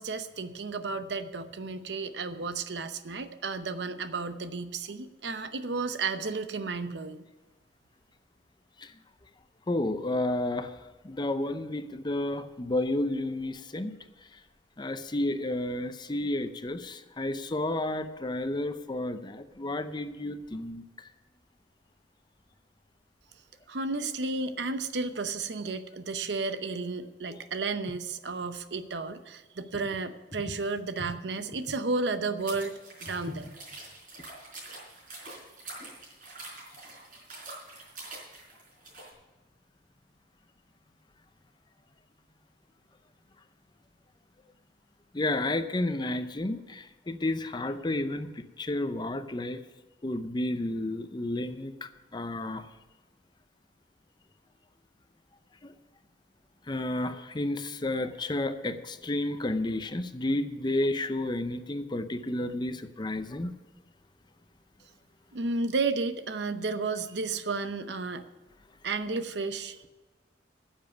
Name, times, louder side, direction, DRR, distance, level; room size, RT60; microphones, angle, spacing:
voice 1, 0.0-7.2 23.7-32.7 33.0-33.5 65.3-68.3 68.8-69.9, right 3 dB, 70° right, 11 dB, 0.8 m, -32 dB
voice 2, 9.7-10.7 11.0-13.9 14.8-20.8 27.3-27.4 31.0-31.1 33.3-33.4 45.1-49.6 50.0-52.6 55.6-55.7 56.7-63.5, left 1 dB, 25° left, 10 dB, 0.6 m, -31 dB
sound 1, 32.4-39.1, right 2 dB, 50° right, 4.8 m, -45 dB
10.0 x 7.3 x 9.3 m, 1.2 s
head